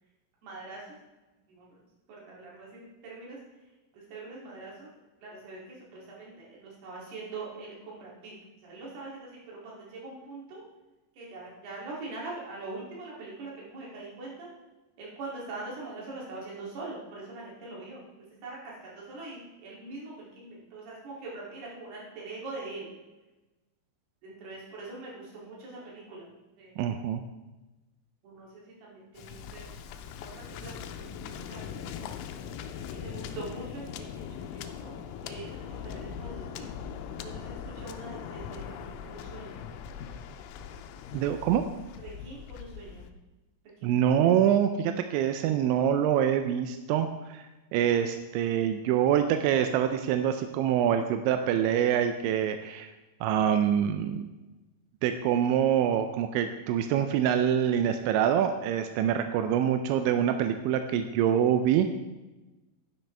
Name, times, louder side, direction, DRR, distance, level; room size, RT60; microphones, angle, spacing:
voice 1, 0.4-1.0 1.5-1.8 2.1-3.7 3.9-4.9 5.2-8.3 8.6-10.6 11.1-14.5 15.0-18.0 18.4-22.9 24.2-26.3 26.6-26.7 28.2-29.8 30.2-36.7 37.2-39.6 42.0-43.1 43.8-44.2, right 3 dB, 55° right, -4 dB, 4.5 m, -43 dB
voice 2, 26.8-27.2 41.1-41.6 43.8-52.9 53.2-54.3 55.0-61.9, right 9 dB, 85° right, 7 dB, 2.7 m, -25 dB
Waves surf, 29.2-43.1, left 8 dB, 85° left, 3.3 m, -41 dB
12.5 x 10.5 x 3.4 m, 1.1 s
omnidirectional pair, 5.8 m